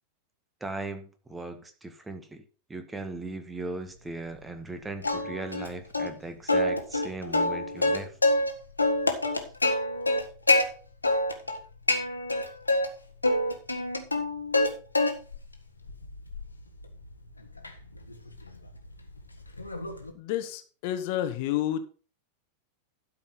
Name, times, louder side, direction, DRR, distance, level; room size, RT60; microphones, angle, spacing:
voice 1, 0.6-2.4 2.7-8.1, right 2 dB, 10° right, 7 dB, 1.7 m, -38 dB
Plucked string instrument, 5.0-5.7 5.9-6.1 6.5-8.5 8.8-10.6 11.0-11.6 11.9-12.9 13.2-14.7 14.9-15.4 15.9-20.1, left 2 dB, 80° left, 1.6 m, -26 dB
voice 2, 20.1-21.8, left 12 dB, 50° left, 10 dB, 1.4 m, -30 dB
12.5 x 5.8 x 5.8 m, 0.38 s
figure-of-eight pair, 90°, 0 cm